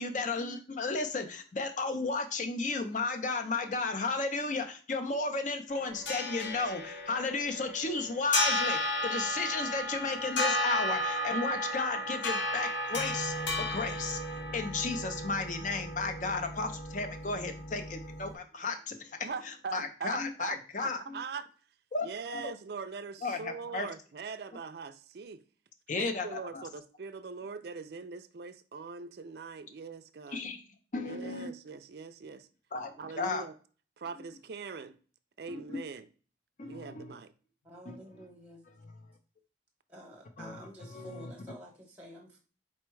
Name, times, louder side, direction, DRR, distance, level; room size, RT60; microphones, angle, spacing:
voice 1, 0.0-14.2 14.5-19.2 19.7-21.2 21.9-22.1 22.3-22.5 23.2-23.9 25.9-26.6 30.3-30.6 30.9-31.5 32.7-33.4 35.5-35.8 36.6-37.1 37.9-38.2 38.8-38.9 40.4-41.3, left 3 dB, 45° left, 0.5 m, -34 dB
sound 1, 5.7-18.3, left 1 dB, 80° left, 0.8 m, -34 dB
voice 2, 19.2-21.5 22.0-25.4 25.9-30.4 31.0-32.5 33.0-33.5 34.0-35.0 35.4-36.1 36.7-37.3, right 5 dB, 55° right, 0.4 m, -41 dB
voice 3, 37.6-38.6 39.9-42.4, equal, 10° right, 0.9 m, -50 dB
4.3 x 2.2 x 4.5 m
head